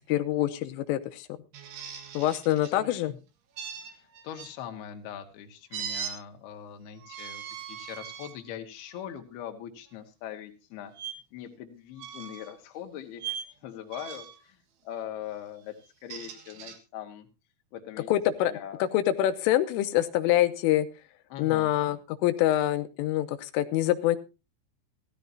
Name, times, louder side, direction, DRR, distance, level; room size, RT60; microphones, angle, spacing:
voice 1, 0.1-1.3 2.1-3.1 18.1-18.5 18.8-20.9 21.4-24.2, left 13 dB, 90° left, 9 dB, 3.4 m, -25 dB
sound 1, 1.5-2.7 3.6-4.5 5.7-6.2 7.0-8.3 9.0-9.2 11.0-11.1 12.0-12.5 13.2-13.5 13.9-14.4 15.8-16.8, right 8 dB, 75° right, 4.0 m, -39 dB
voice 2, 2.7-3.2 3.9-7.4 7.7-10.9 11.3-13.4 13.6-15.7 16.0-17.3 17.7-18.1 18.5-18.8 21.3-21.7, left 10 dB, 65° left, 4 dB, 3.1 m, -41 dB
16.5 x 13.5 x 2.7 m, 0.29 s
omnidirectional pair, 5.7 m